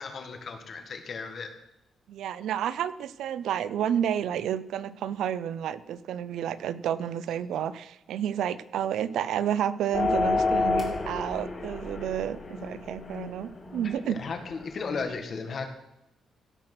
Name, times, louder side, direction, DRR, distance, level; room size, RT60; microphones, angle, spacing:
voice 1, 0.0-1.5 14.1-15.7, left 5 dB, 45° left, 6 dB, 1.7 m, -35 dB
voice 2, 2.1-14.2, right 10 dB, 80° right, 16 dB, 0.5 m, -30 dB
sound 1, 9.9-15.1, left 3 dB, 30° left, 3.7 m, -30 dB
17.0 x 5.9 x 6.0 m, 0.86 s
cardioid pair, 140°, 0 cm